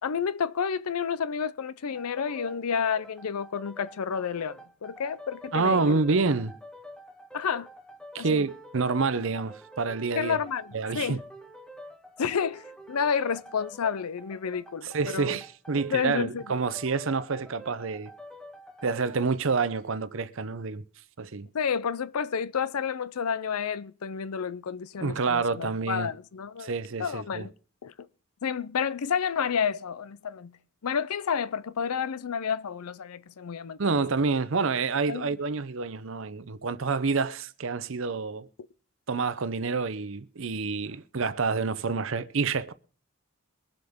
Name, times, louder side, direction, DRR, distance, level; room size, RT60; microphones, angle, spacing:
voice 1, 0.0-5.9 7.3-7.7 8.2-8.5 10.2-11.2 12.2-15.4 15.9-16.4 21.5-26.7 27.0-27.5 27.8-27.9 28.4-30.5 30.8-34.0 35.1-35.3, left 6 dB, 90° left, 0.5 m, -30 dB
sound 1, 1.9-19.4, equal, 5° left, 0.8 m, -47 dB
voice 2, 5.5-6.5 8.1-10.4 10.7-11.2 14.8-18.1 18.8-20.8 21.2-21.5 25.0-26.1 26.6-27.5 33.8-38.5 39.1-42.7, right 4 dB, 65° right, 0.7 m, -28 dB
23.0 x 7.8 x 3.6 m
head